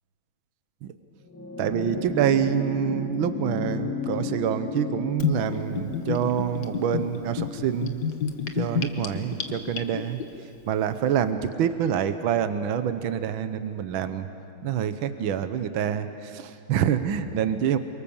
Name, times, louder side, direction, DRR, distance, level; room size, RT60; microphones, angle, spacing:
sound 1, 1.2-9.9 11.1-11.2, left 4 dB, 5° left, 5.3 m, -35 dB
voice 1, 1.6-8.0 8.5-10.2 10.7-14.3 14.6-17.8, right 9 dB, 70° right, 10 dB, 1.7 m, -26 dB
Gurgling / Bathtub (filling or washing), 5.2-10.2, left 7 dB, 55° left, 1.7 m, -30 dB
28.0 x 25.0 x 7.2 m, 2.6 s
omnidirectional pair, 2.3 m